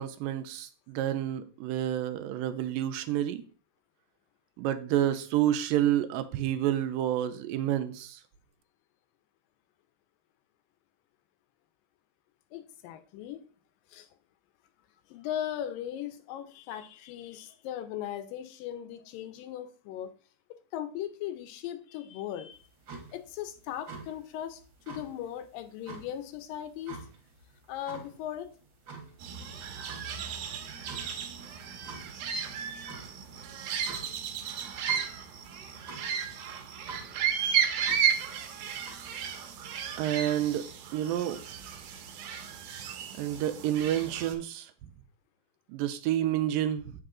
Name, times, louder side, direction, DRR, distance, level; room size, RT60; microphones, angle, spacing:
voice 1, 0.0-3.4 4.6-8.2 40.0-40.7 40.9-41.4 43.2-44.7 45.7-46.9, right 12 dB, 90° right, 2.4 m, -29 dB
voice 2, 12.5-13.4 13.9-14.1 15.1-20.1 20.7-22.6 23.1-24.6 24.9-27.1 27.7-28.5, left 11 dB, 85° left, 2.5 m, -38 dB
sound 1, 22.5-38.9, right 3 dB, 45° right, 1.7 m, -48 dB
sound 2, 29.2-44.3, right 8 dB, 75° right, 2.3 m, -34 dB
7.9 x 5.6 x 3.8 m
omnidirectional pair, 3.9 m